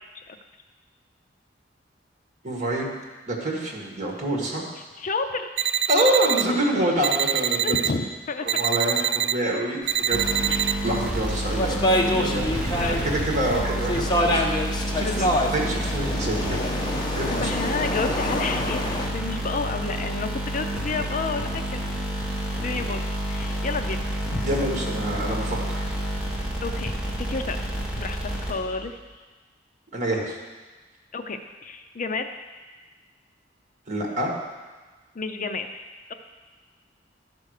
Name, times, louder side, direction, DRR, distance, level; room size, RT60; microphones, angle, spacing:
voice 1, 2.4-2.9 3.3-4.6 5.9-7.7 8.4-14.4 14.9-15.3 15.5-16.6 17.1-17.5 24.4-25.9 29.9-30.4 33.9-34.3, right 1 dB, 40° right, -1 dB, 1.9 m, -27 dB
voice 2, 5.0-5.5 6.5-6.6 7.6-8.6 9.0-9.1 10.5-10.9 12.8-13.2 15.0-15.3 17.3-22.1 22.6-23.0 23.3-24.1 24.3-24.4 26.6-27.6 27.9-29.0 31.1-32.3 35.1-35.8, left 4 dB, 45° left, 7 dB, 0.5 m, -31 dB
sound 1, 5.6-6.4 7.0-7.9 8.5-9.3 9.9-10.7, right 10 dB, 65° right, 0.3 m, -24 dB
sound 2, 10.1-28.9, right 1 dB, 5° right, 1.8 m, -29 dB
sound 3, 10.2-13.0 13.4-19.1, left 1 dB, 25° left, 0.9 m, -26 dB
12.0 x 5.2 x 6.5 m, 1.3 s
head